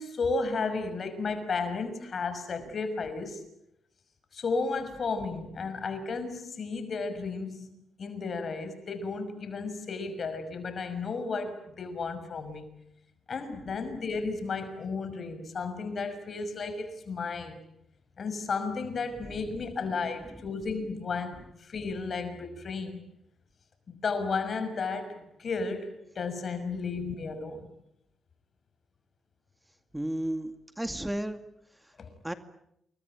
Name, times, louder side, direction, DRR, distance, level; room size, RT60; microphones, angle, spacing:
voice 1, 0.0-3.4 4.3-7.7 8.0-12.7 13.3-17.6 18.2-23.0 23.9-27.7 32.0-32.1, left 4 dB, 55° left, 6.0 m, -33 dB
voice 2, 29.9-31.4 32.2-32.3, right 1 dB, 10° right, 2.2 m, -33 dB
28.5 x 23.0 x 9.1 m
cardioid pair, 75°, 0 cm